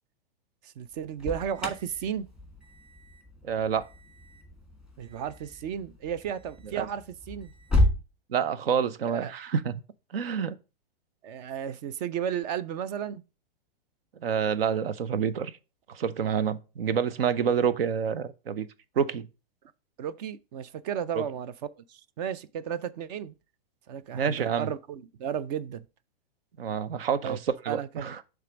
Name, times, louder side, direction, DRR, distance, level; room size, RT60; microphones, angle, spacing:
voice 1, 0.6-2.3 5.0-7.5 9.1-9.3 11.2-13.2 20.0-23.3 23.9-25.9 27.2-27.4 27.7-28.1, right 8 dB, 45° right, 0.5 m, -34 dB
Alarm, 0.9-8.0, left 1 dB, 5° right, 1.3 m, -32 dB
voice 2, 3.4-3.9 6.8-6.9 8.3-9.8 10.1-10.5 14.2-15.5 15.9-18.7 19.0-19.3 21.1-21.2 24.1-24.7 26.6-27.4 27.6-28.2, right 7 dB, 80° right, 0.8 m, -28 dB
6.6 x 3.5 x 5.1 m
hypercardioid pair, 130°, 29 cm